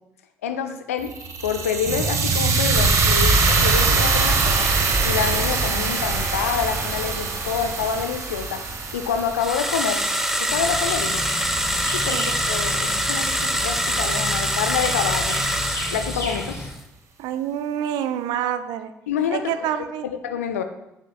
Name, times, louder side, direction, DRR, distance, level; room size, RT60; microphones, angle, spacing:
voice 1, 0.4-1.1 1.4-4.7 5.0-8.7 8.9-10.0 10.4-11.3 11.9-12.2 12.5-15.4 15.9-16.6 19.1-19.5 20.0-20.6, left 7 dB, 75° left, 9 dB, 0.5 m, -27 dB
sound 1, 1.0-11.2, right 4 dB, 40° right, 1.0 m, -22 dB
sound 2, 9.4-16.7, right 1 dB, 5° right, 0.9 m, -24 dB
sound 3, 10.5-16.7, left 2 dB, 35° left, 1.9 m, -32 dB
voice 2, 17.2-18.9 19.3-20.1, right 10 dB, 60° right, 11 dB, 0.5 m, -27 dB
9.6 x 5.8 x 2.3 m, 0.90 s
figure-of-eight pair, 45°, 8 cm